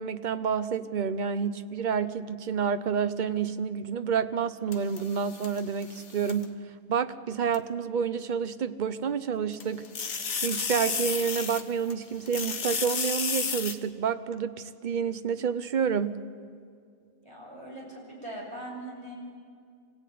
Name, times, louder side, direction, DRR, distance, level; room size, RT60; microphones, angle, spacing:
voice 1, 0.0-6.6 6.9-9.8 10.4-16.2, right 7 dB, 45° right, 11 dB, 0.9 m, -29 dB
sound 1, 4.7-6.4 7.5-7.6 9.5-11.9 12.3-13.7, left 5 dB, 70° left, 1.5 m, -32 dB
voice 2, 17.2-19.1, right 1 dB, 25° right, -3 dB, 6.3 m, -41 dB
25.5 x 17.0 x 9.3 m, 2.2 s
omnidirectional pair, 1.3 m